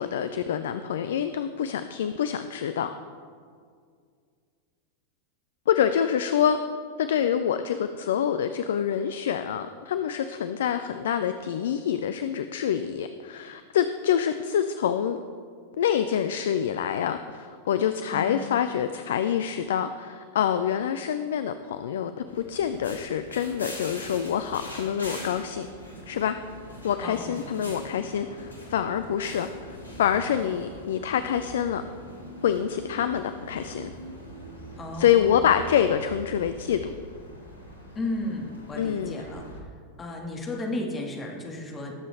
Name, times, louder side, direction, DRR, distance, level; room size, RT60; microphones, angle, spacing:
voice 1, 0.0-2.9 5.7-6.6 7.0-15.2 15.7-25.7 26.1-26.4 26.8-31.8 32.4-33.9 35.0-36.9 38.7-39.2, left 9 dB, 60° left, 10 dB, 0.4 m, -26 dB
sound 1, 22.3-39.6, equal, 85° right, 2.0 m, -42 dB
voice 2, 27.0-27.5 34.8-35.6 38.0-39.4 40.0-41.9, left 2 dB, 20° left, 0 dB, 1.9 m, -34 dB
19.0 x 7.5 x 3.4 m, 2.1 s
figure-of-eight pair, 90°, 0 cm